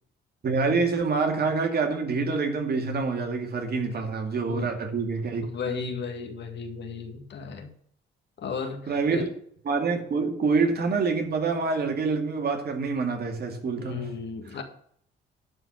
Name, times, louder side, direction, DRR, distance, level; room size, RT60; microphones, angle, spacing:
voice 1, 0.4-5.9 8.9-9.3 9.7-14.1, right 4 dB, 50° right, 2.3 m, -26 dB
voice 2, 5.4-7.7 8.4-9.3 13.8-14.6, left 5 dB, 60° left, 1.9 m, -35 dB
11.0 x 4.6 x 7.7 m
cardioid pair, 90°, 20 cm